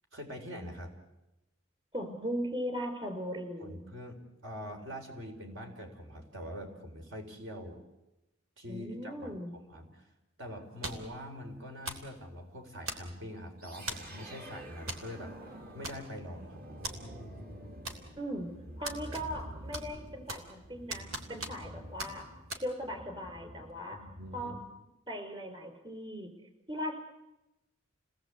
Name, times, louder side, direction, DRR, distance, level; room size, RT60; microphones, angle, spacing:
voice 1, 0.1-1.0 3.6-7.8 8.6-10.1 10.4-16.8 23.9-24.6, equal, 65° right, 3 dB, 4.3 m, -44 dB
voice 2, 1.9-3.8 8.7-9.5 18.2-18.5 18.8-22.2 22.6-24.0 24.3-24.5 25.1-26.3 26.7-27.0, equal, 25° right, 6 dB, 5.0 m, -38 dB
sound 1, 10.8-11.2 11.8-12.1 12.9-13.3 13.9-14.1 14.9-15.1 15.3-15.4 15.8-16.3 16.8-17.0 17.8-18.3 18.8-19.5 19.7-20.6 20.9-21.7 22.0-22.1 22.5-22.6, right 2 dB, 85° right, 3.4 m, -40 dB
sound 2, 13.6-24.7, equal, 50° right, 3.4 m, -48 dB
29.5 x 19.0 x 8.4 m, 0.96 s
head